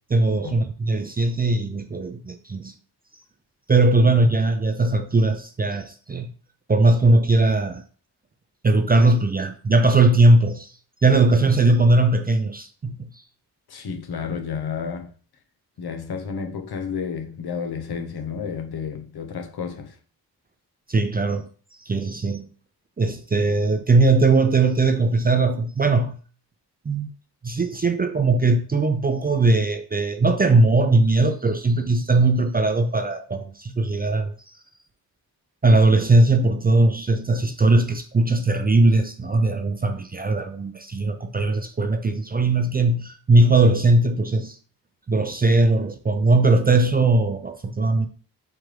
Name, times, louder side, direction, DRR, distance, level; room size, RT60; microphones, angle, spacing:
voice 1, 0.1-2.8 3.7-6.3 6.7-7.8 8.6-10.7 11.0-13.2 20.9-21.5 21.9-22.5 23.0-26.2 26.9-27.1 27.4-34.3 35.6-44.6 45.1-48.1, right 2 dB, 25° right, 0.4 m, -19 dB
voice 2, 13.7-15.1 15.8-20.0, left 6 dB, 65° left, 0.8 m, -31 dB
4.5 x 2.5 x 3.2 m
cardioid pair, 50°, 41 cm